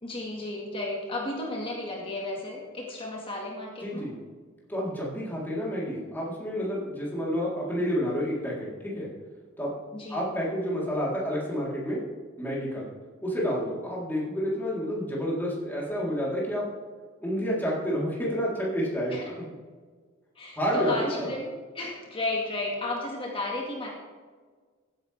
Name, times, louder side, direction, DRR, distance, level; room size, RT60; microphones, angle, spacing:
voice 1, 0.0-4.1 9.9-10.4 19.1-19.3 20.4-23.9, left 2 dB, 25° left, -2 dB, 2.0 m, -33 dB
voice 2, 3.8-4.2 4.7-9.1 9.6-9.7 10.1-12.0 12.4-12.9 13.2-16.7 17.2-19.2 20.6-21.3, equal, 10° left, -6 dB, 3.9 m, -29 dB
15.5 x 9.9 x 3.5 m, 1.5 s
head